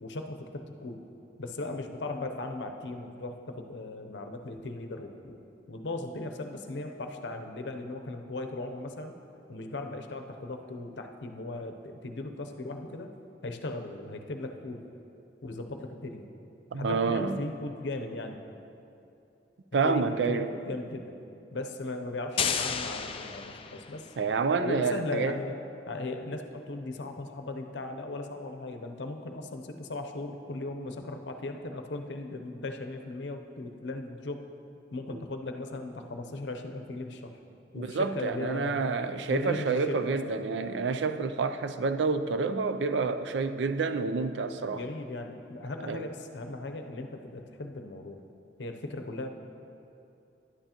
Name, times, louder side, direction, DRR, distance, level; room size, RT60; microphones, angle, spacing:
voice 1, 0.0-1.0 1.4-5.4 5.7-9.2 9.5-13.1 13.4-14.8 15.4-16.3 16.7-18.4 19.8-21.1 21.5-24.1 24.6-25.5 25.9-34.4 34.9-37.3 37.7-38.9 39.3-40.4 44.7-48.2 48.6-49.3, left 2 dB, 85° left, 5 dB, 0.7 m, -37 dB
voice 2, 16.7-17.4 19.7-20.5 24.2-25.4 35.1-35.2 37.7-44.8 45.8-46.0, right 4 dB, 85° right, 10 dB, 0.4 m, -28 dB
sound 1, 22.4-24.2, left 7 dB, 30° left, 0.4 m, -32 dB
11.0 x 9.1 x 2.9 m, 2.7 s
head